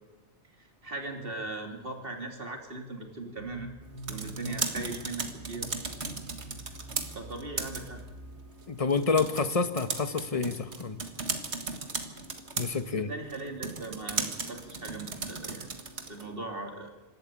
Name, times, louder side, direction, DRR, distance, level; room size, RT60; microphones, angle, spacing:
voice 1, 0.6-3.7 4.1-5.7 7.1-8.0 13.0-15.7 16.0-16.9, right 2 dB, 50° right, 3 dB, 3.2 m, -39 dB
sound 1, 3.4-8.9, right 2 dB, 55° left, 4.5 m, -45 dB
sound 2, 3.8-16.3, right 4 dB, 70° right, 2.0 m, -37 dB
voice 2, 8.7-11.0 12.6-13.1, left 4 dB, 30° left, 11 dB, 1.1 m, -28 dB
26.5 x 13.0 x 8.5 m, 1.2 s
omnidirectional pair, 1.2 m